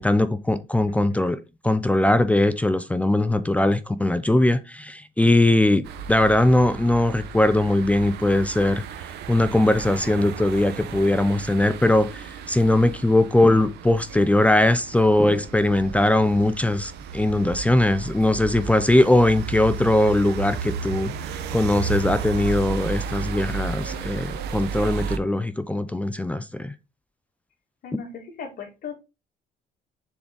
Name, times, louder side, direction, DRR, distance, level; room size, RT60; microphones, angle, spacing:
voice 1, 0.0-8.8 9.3-21.1 21.5-26.7, left 1 dB, 10° left, 0.5 m, -20 dB
sound 1, 5.8-25.2, right 6 dB, 80° right, 1.0 m, -34 dB
voice 2, 27.8-29.0, left 6 dB, 60° left, 2.4 m, -37 dB
7.0 x 3.9 x 4.7 m
cardioid pair, 110°, 17 cm